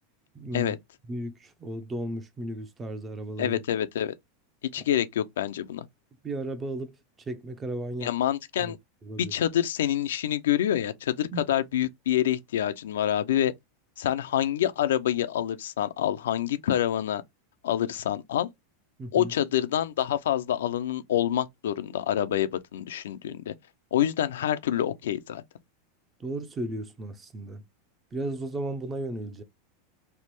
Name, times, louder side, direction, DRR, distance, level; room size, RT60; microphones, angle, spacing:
voice 1, 0.3-0.8 1.1-3.6 6.2-7.0 7.3-8.1 8.6-8.8 9.0-9.3 11.3-11.4 19.0-19.3 26.2-27.6 28.1-29.4, right 1 dB, 20° right, 0.6 m, -34 dB
voice 2, 3.4-4.1 4.7-5.8 8.0-8.7 9.2-13.5 14.0-17.2 17.6-18.5 19.1-23.5 23.9-25.4, left 11 dB, 85° left, 0.4 m, -27 dB
3.2 x 2.1 x 3.0 m
supercardioid pair, 120°, 0 cm